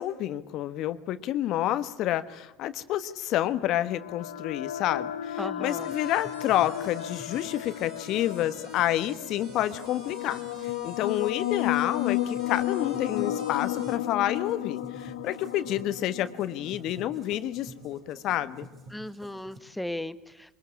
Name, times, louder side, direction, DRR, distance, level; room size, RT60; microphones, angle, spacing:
voice 1, 0.0-18.7, left 13 dB, 55° left, 13 dB, 1.3 m, -29 dB
sound 1, 3.6-17.2, left 13 dB, 90° left, 1.1 m, -33 dB
voice 2, 5.4-5.9 18.9-20.5, left 1 dB, 5° left, 14 dB, 1.3 m, -36 dB
sound 2, 5.6-14.0, right 5 dB, 60° right, 5.5 m, -53 dB
sound 3, 5.7-19.6, right 1 dB, 40° right, 5.6 m, -50 dB
22.5 x 21.0 x 9.9 m, 1.0 s
supercardioid pair, 90°, 0 cm